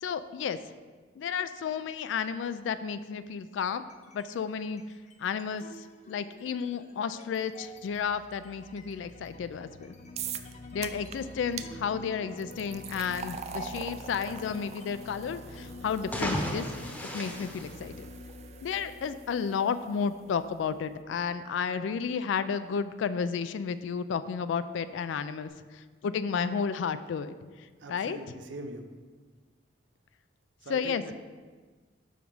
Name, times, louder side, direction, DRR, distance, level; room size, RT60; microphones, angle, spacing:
voice 1, 0.0-0.6 1.2-3.8 4.1-4.8 5.2-5.6 6.1-9.9 10.7-16.7 17.1-17.9 18.6-27.3 27.9-28.2 30.7-31.0, left 6 dB, 85° left, 12 dB, 0.3 m, -32 dB
sound 1, 3.8-4.3 4.7-21.3, left 2 dB, 40° left, 0.6 m, -47 dB
sound 2, 10.2-10.5 10.8-11.2 11.6-11.7 12.4-19.5, right 8 dB, 35° right, 0.3 m, -43 dB
sound 3, 15.9-18.5, equal, 10° left, 0.8 m, -35 dB
voice 2, 27.8-28.9 30.6-31.1, right 2 dB, 80° right, 5 dB, 0.7 m, -42 dB
5.9 x 5.0 x 5.2 m, 1.4 s
head